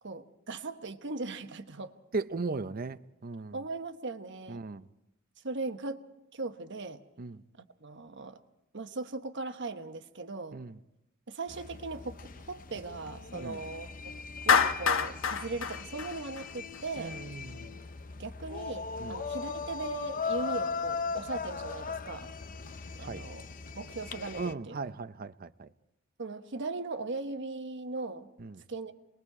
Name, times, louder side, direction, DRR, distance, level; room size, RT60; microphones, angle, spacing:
voice 1, 0.0-1.9 3.5-4.6 5.4-6.0 6.3-7.0 7.6-8.4 8.7-10.6 11.3-17.2 18.2-22.3 23.0-23.5 23.7-24.8 26.2-28.3 28.7-28.9, right 3 dB, 60° right, 1.2 m, -39 dB
voice 2, 2.1-3.6 4.5-4.9 7.2-7.4 10.5-10.7 13.4-13.6 17.0-17.7 19.0-19.2 23.0-23.2 24.3-25.7 28.4-28.6, right 3 dB, 45° right, 0.7 m, -37 dB
sound 1, 11.5-24.5, left 5 dB, 45° left, 0.7 m, -39 dB
Clapping, 14.5-16.8, left 6 dB, 70° left, 1.2 m, -26 dB
28.0 x 21.0 x 4.9 m
head